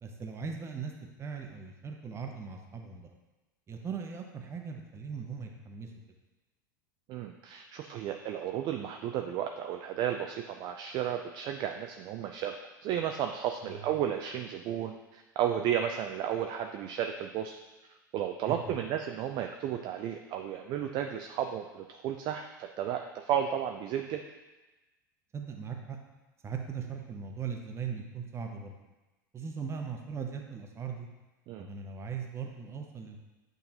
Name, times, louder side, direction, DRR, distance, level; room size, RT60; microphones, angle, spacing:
voice 1, 0.0-0.9 1.2-3.1 3.7-5.9 13.6-13.9 18.7-18.8 25.3-26.0 26.4-28.7 29.3-31.1 31.6-33.2, right 6 dB, 25° right, 3 dB, 0.9 m, -39 dB
voice 2, 7.1-12.6 12.8-17.5 18.1-24.2 31.5-31.7, right 9 dB, 40° right, 5 dB, 0.4 m, -33 dB
8.5 x 3.9 x 2.9 m, 1.1 s
figure-of-eight pair, 80°, 11 cm